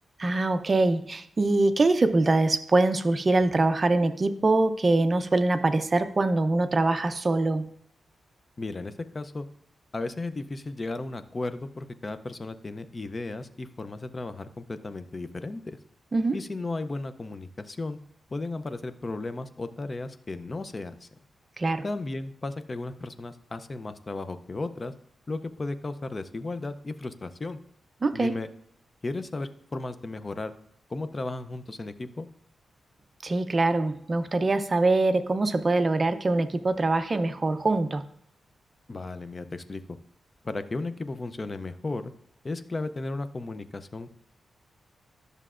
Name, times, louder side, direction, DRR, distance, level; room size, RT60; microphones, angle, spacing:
voice 1, 0.2-7.6 16.1-16.4 21.6-21.8 28.0-28.3 33.2-38.0, right 2 dB, 30° right, 9 dB, 0.5 m, -23 dB
voice 2, 8.6-9.5 9.9-15.8 16.3-18.0 18.3-21.1 21.8-24.9 25.3-27.6 28.1-28.5 29.0-30.5 30.9-32.3 38.9-39.8 40.4-42.1 42.4-44.1, left 2 dB, 25° left, 11 dB, 0.5 m, -35 dB
11.0 x 6.7 x 2.5 m, 0.68 s
wide cardioid pair, 135°, 0 cm